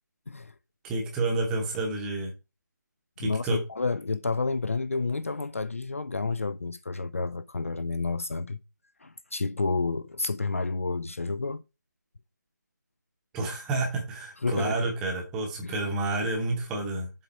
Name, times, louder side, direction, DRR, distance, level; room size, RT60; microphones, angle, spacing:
voice 1, 0.8-2.3 3.2-3.6 13.3-17.1, right 2 dB, 5° right, 0.9 m, -29 dB
voice 2, 3.2-8.6 9.0-11.6 14.4-14.9 15.6-15.8, left 3 dB, 45° left, 0.4 m, -30 dB
7.4 x 3.8 x 5.4 m
figure-of-eight pair, 160°, 10 cm